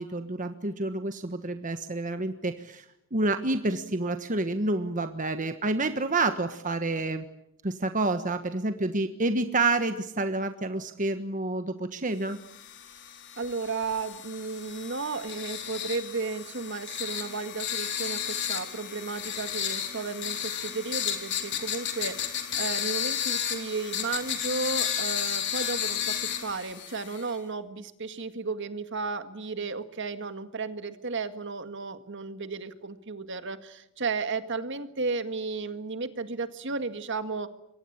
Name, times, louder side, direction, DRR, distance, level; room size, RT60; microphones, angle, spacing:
voice 1, 0.0-2.8 3.1-7.2 7.6-12.4, right 2 dB, 40° right, 8 dB, 1.4 m, -28 dB
sound 1, 12.4-27.3, left 9 dB, 60° left, 4.0 m, -33 dB
voice 2, 13.4-37.5, right 4 dB, 60° right, 10 dB, 1.9 m, -34 dB
28.0 x 23.5 x 8.8 m, 0.78 s
head